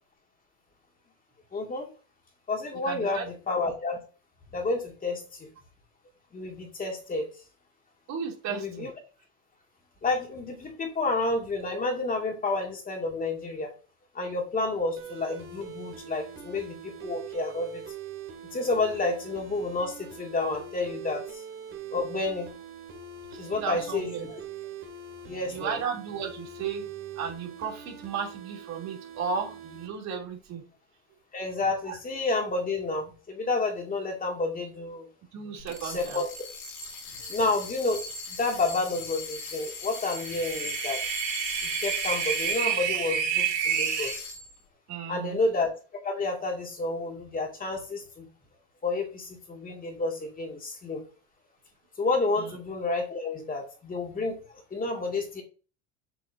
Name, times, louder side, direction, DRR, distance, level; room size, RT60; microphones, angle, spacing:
voice 1, 1.5-1.9 2.5-4.0 4.5-5.2 6.3-7.3 8.5-8.9 10.0-13.7 14.1-17.8 18.5-21.4 21.9-22.5 23.4-24.4 25.3-25.8 31.3-35.1 35.8-36.3 37.3-38.0 38.3-41.0 41.6-44.2 45.1-45.7 46.0-48.3 48.8-51.0 52.0-54.4 54.7-55.4, left 3 dB, 25° left, 1 dB, 2.4 m, -30 dB
voice 2, 2.8-3.2 8.1-8.9 23.3-24.2 25.5-26.9 27.2-30.6 31.8-32.0 35.3-36.2 44.9-45.4 52.4-52.5, right 6 dB, 50° right, 0 dB, 3.2 m, -34 dB
sound 1, 15.0-29.9, right 7 dB, 35° right, 2.6 m, -43 dB
sound 2, 35.6-43.0 43.4-44.6, left 4 dB, 60° left, 3.6 m, -39 dB
sound 3, 39.9-44.2, right 8 dB, 85° right, 2.6 m, -29 dB
7.7 x 6.8 x 2.8 m, 0.35 s
supercardioid pair, 95°, 34 cm